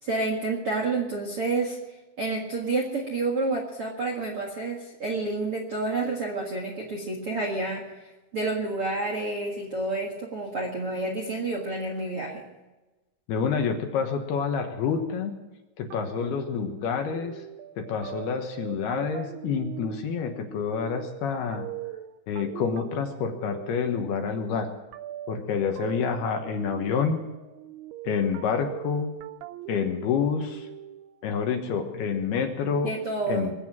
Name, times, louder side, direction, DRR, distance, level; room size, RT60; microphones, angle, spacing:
voice 1, 0.0-1.8 2.2-7.9 8.3-12.4 32.8-33.5, right 3 dB, 55° right, 0 dB, 1.6 m, -29 dB
voice 2, 13.3-15.4 15.8-17.4 17.8-21.7 22.3-24.7 25.3-27.2 28.0-29.1 29.7-30.7 31.2-32.9 33.3-33.5, left 6 dB, 70° left, 4 dB, 2.9 m, -28 dB
sound 1, 15.9-31.3, right 13 dB, 80° right, 2.3 m, -41 dB
22.0 x 8.5 x 7.6 m, 1.1 s
omnidirectional pair, 5.3 m